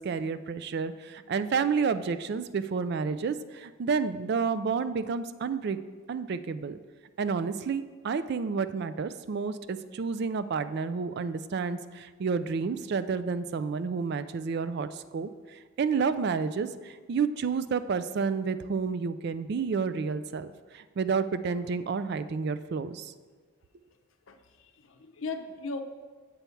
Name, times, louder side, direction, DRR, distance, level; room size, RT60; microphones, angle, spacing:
voice 1, 0.0-5.8 6.1-6.8 7.2-23.1, right 5 dB, 50° right, 13 dB, 0.3 m, -30 dB
voice 2, 24.3-25.8, left 3 dB, 70° left, 7 dB, 0.6 m, -38 dB
7.0 x 6.9 x 4.5 m, 1.4 s
head